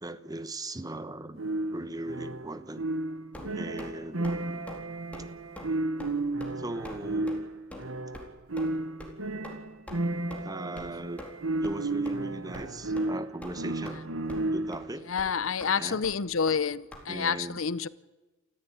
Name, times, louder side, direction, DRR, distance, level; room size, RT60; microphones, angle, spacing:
voice 1, 0.0-1.4 1.7-2.8 3.4-4.6 6.6-7.3 10.4-11.2 11.6-14.1 14.5-15.1 15.8-16.0 17.1-17.6, right 1 dB, 20° right, 1.0 m, -39 dB
sound 1, 1.4-14.9, right 2 dB, 80° right, 1.6 m, -33 dB
sound 2, 3.3-3.9 4.2-4.4 4.7-4.8 5.1-5.3 5.6-5.7 6.0-6.1 6.4-6.5 6.8-7.0 7.3-7.4 7.7-7.8 8.1-8.2 8.6-8.7 9.0-9.1 9.4-9.6 9.9-10.0 10.3-10.4 10.8-10.9 11.2-11.3 11.6-11.8 12.0-12.1 12.5-12.7 13.0-13.1 13.4-14.0 14.3-14.5 14.7-14.8 15.2-15.3 15.6-15.7 16.0-16.2 16.5-16.6 16.9-17.0, left 1 dB, 5° left, 3.9 m, -43 dB
voice 2, 15.1-17.9, left 6 dB, 70° left, 0.7 m, -28 dB
29.5 x 14.5 x 9.4 m
head